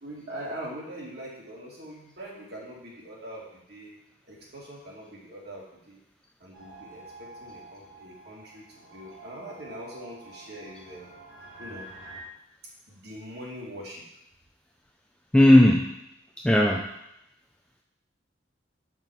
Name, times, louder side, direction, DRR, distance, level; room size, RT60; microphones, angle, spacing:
voice 1, 0.0-3.9 4.3-6.0 6.4-11.1 11.6-11.9 12.9-14.0, equal, 55° right, -4 dB, 2.3 m, -42 dB
sound 1, 6.5-12.2, right 2 dB, 85° right, 3.0 m, -48 dB
voice 2, 15.3-16.0 16.4-16.9, left 1 dB, 5° left, 0 dB, 0.4 m, -17 dB
7.1 x 5.9 x 4.5 m, 0.82 s
head